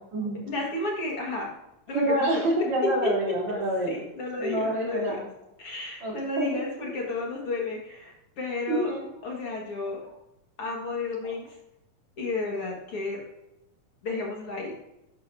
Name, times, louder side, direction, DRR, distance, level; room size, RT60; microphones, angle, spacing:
voice 1, 0.5-1.5 1.9-2.5 3.0-3.1 3.9-5.3 5.6-8.9 9.2-10.0 10.6-11.6 12.2-13.2 14.0-14.7, left 3 dB, 50° left, -2 dB, 2.5 m, -32 dB
voice 2, 1.9-4.0 4.4-5.3 6.0-6.5 8.7-9.1 11.2-11.3, right 1 dB, 60° right, -4 dB, 4.5 m, -27 dB
13.0 x 10.5 x 2.7 m, 0.88 s
omnidirectional pair, 3.6 m